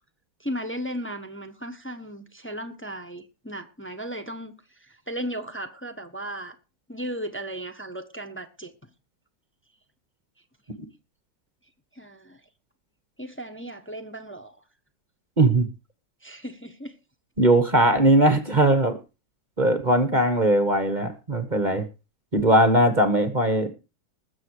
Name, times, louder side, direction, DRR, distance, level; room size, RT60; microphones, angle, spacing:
voice 1, 0.4-4.5 4.8-6.5 6.9-8.7 11.9-12.4 13.2-14.6 16.2-16.9, equal, 5° left, 1.2 m, -35 dB
voice 2, 15.4-15.7 17.4-19.0 19.6-21.8 22.3-23.7, right 1 dB, 25° right, 1.3 m, -20 dB
20.5 x 7.5 x 4.8 m
omnidirectional pair, 2.2 m